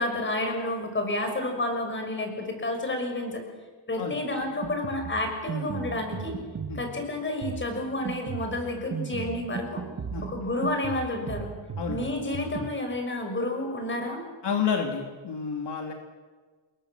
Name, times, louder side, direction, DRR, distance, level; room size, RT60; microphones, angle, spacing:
voice 1, 0.0-3.4 3.9-6.3 6.7-9.8 10.2-11.5 11.9-14.2, left 1 dB, 25° left, 4 dB, 6.0 m, -30 dB
Drum kit, 4.4-12.7, right 6 dB, 35° right, 1.5 m, -37 dB
voice 2, 14.4-15.9, left 6 dB, 60° left, 3 dB, 3.0 m, -29 dB
28.0 x 22.5 x 7.4 m, 1.4 s
wide cardioid pair, 150°, 47 cm